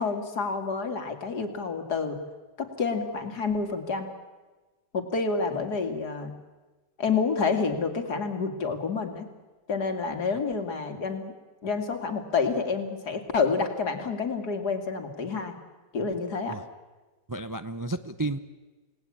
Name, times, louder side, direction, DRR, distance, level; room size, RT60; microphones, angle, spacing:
voice 1, 0.0-2.2 2.6-4.1 4.9-6.3 7.0-9.3 9.7-11.3 11.6-15.5 15.9-16.6, left 4 dB, 70° left, 6 dB, 2.9 m, -28 dB
voice 2, 17.3-18.4, right 2 dB, 25° right, 10 dB, 0.4 m, -32 dB
29.5 x 19.0 x 8.6 m, 1.2 s
omnidirectional pair, 1.8 m